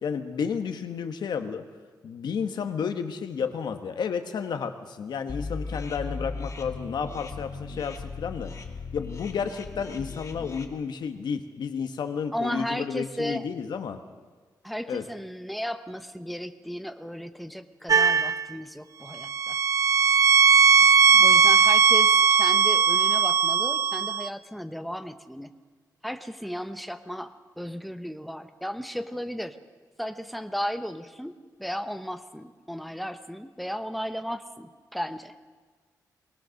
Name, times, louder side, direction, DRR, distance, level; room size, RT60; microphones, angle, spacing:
voice 1, 0.0-1.6 2.0-8.5 8.9-14.0 14.9-15.1 21.1-21.3, left 6 dB, 85° left, 7 dB, 1.5 m, -31 dB
sound 1, 5.3-10.6, left 4 dB, 45° left, 1.8 m, -37 dB
voice 2, 12.3-13.4 14.6-19.6 21.2-25.5 26.0-29.6 30.0-31.3 31.6-35.3, equal, ahead, 9 dB, 0.9 m, -35 dB
sound 2, 17.9-18.4 19.2-24.3, right 6 dB, 50° right, 0.6 m, -19 dB
21.0 x 20.0 x 6.5 m, 1.5 s
wide cardioid pair, 150°, 7 cm